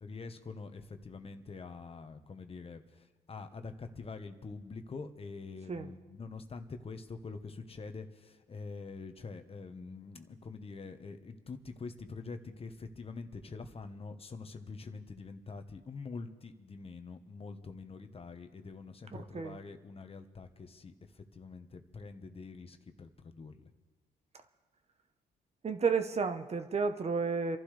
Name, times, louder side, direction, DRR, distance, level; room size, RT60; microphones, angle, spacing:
voice 1, 0.0-23.7, left 4 dB, 35° left, 7 dB, 1.2 m, -45 dB
voice 2, 19.1-19.6 25.6-27.6, right 5 dB, 40° right, 9 dB, 0.9 m, -32 dB
29.5 x 11.5 x 3.3 m, 1.4 s
cardioid pair, 80°, 17 cm